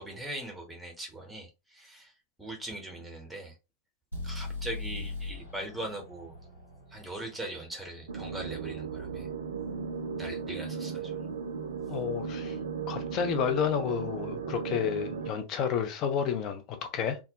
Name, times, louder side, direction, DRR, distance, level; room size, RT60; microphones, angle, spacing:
voice 1, 0.0-2.1 2.4-3.6 4.2-6.3 6.9-9.3 10.2-11.1, right 1 dB, 5° right, 0.9 m, -40 dB
sound 1, 4.1-8.1, left 3 dB, 85° left, 1.1 m, -40 dB
sound 2, 8.1-15.3, right 6 dB, 65° right, 0.3 m, -36 dB
voice 2, 11.9-12.6 12.9-17.2, left 8 dB, 35° left, 0.5 m, -30 dB
2.2 x 2.1 x 2.7 m
figure-of-eight pair, 90°, 0 cm